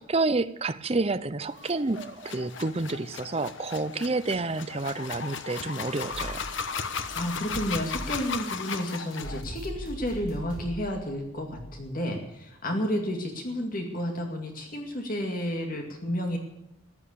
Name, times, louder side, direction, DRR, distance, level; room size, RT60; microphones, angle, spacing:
voice 1, 0.0-6.5, right 3 dB, 30° right, 13 dB, 0.6 m, -29 dB
sound 1, 1.5-9.4, left 5 dB, 60° left, 1.1 m, -36 dB
sound 2, 6.1-11.9, right 1 dB, 80° left, 5.3 m, -41 dB
voice 2, 7.1-16.4, equal, 40° left, 3 dB, 2.3 m, -31 dB
14.5 x 11.0 x 8.4 m, 0.82 s
head